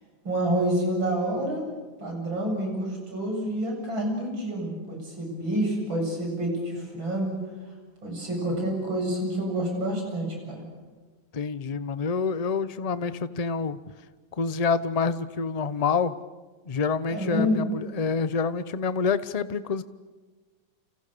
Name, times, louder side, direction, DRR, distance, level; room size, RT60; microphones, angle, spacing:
voice 1, 0.3-1.7 2.0-7.4 8.0-10.7 17.1-17.6, right 1 dB, 85° right, 1 dB, 8.7 m, -28 dB
voice 2, 11.3-13.8 14.3-16.2 16.7-19.8, left 5 dB, 40° left, 14 dB, 0.5 m, -27 dB
30.0 x 28.0 x 6.8 m, 1.3 s
omnidirectional pair, 2.1 m